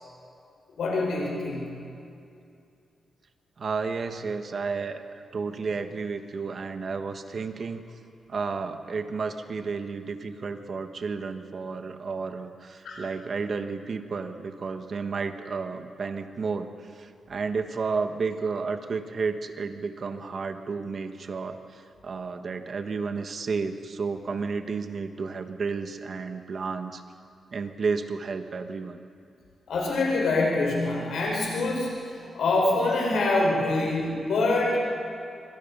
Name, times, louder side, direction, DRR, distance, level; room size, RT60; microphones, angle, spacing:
voice 1, 0.8-1.7 12.8-13.0 29.7-31.9 32.3-34.8, left 2 dB, 85° left, -2 dB, 5.3 m, -25 dB
voice 2, 3.6-7.9 8.3-27.0 27.5-29.0, right 4 dB, 45° right, 7 dB, 1.4 m, -32 dB
25.5 x 25.0 x 5.6 m, 2.6 s
wide cardioid pair, 145°, 0 cm